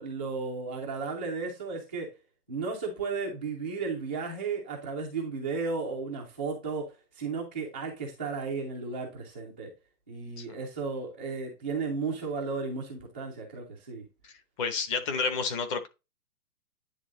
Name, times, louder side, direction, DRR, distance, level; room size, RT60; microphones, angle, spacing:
voice 1, 0.0-2.1 2.5-9.7 10.1-14.0, right 4 dB, 5° right, 0.4 m, -34 dB
voice 2, 14.6-15.9, left 5 dB, 20° left, 0.8 m, -30 dB
10.0 x 3.4 x 3.8 m
hypercardioid pair, 150°, 49 cm